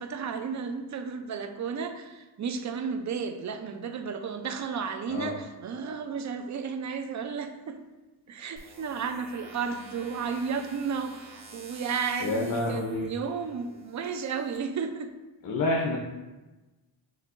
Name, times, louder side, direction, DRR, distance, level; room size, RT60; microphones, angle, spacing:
voice 1, 0.0-7.8 8.3-15.1, right 6 dB, 40° right, 7 dB, 0.5 m, -33 dB
sound 1, 8.6-14.6, right 3 dB, 75° right, 1.1 m, -50 dB
voice 2, 12.2-13.1 15.4-16.0, left 2 dB, 50° left, -1 dB, 0.7 m, -28 dB
6.2 x 2.8 x 2.5 m, 1.1 s
cardioid pair, 75°, 45 cm